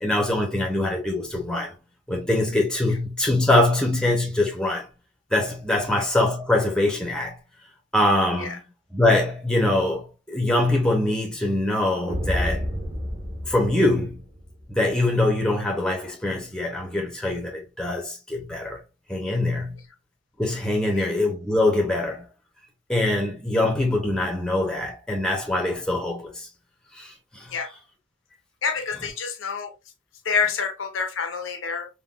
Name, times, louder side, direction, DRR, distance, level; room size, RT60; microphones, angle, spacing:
voice 1, 0.0-1.7 2.1-4.9 5.3-7.4 7.9-8.6 8.9-12.6 13.5-14.2 14.7-18.8 19.1-19.8 20.4-22.3 22.9-26.5 26.9-27.5, left 1 dB, 5° left, 0.6 m, -23 dB
sound 1, 12.1-14.7, equal, 25° right, 0.8 m, -30 dB
voice 2, 28.6-29.7 30.2-31.9, left 5 dB, 80° left, 0.7 m, -27 dB
3.6 x 2.2 x 2.3 m
head